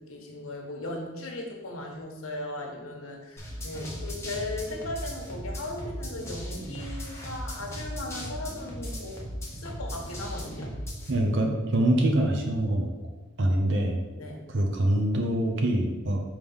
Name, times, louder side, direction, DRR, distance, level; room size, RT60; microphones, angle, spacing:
voice 1, 0.0-9.2 9.5-10.7 14.1-14.4, left 1 dB, 85° left, 2 dB, 1.2 m, -37 dB
sound 1, 3.4-11.1, equal, 15° left, 1.1 m, -37 dB
voice 2, 11.1-12.9 13.4-14.0 14.5-16.2, right 1 dB, 60° right, 2 dB, 0.8 m, -24 dB
5.2 x 3.3 x 5.4 m, 1.2 s
head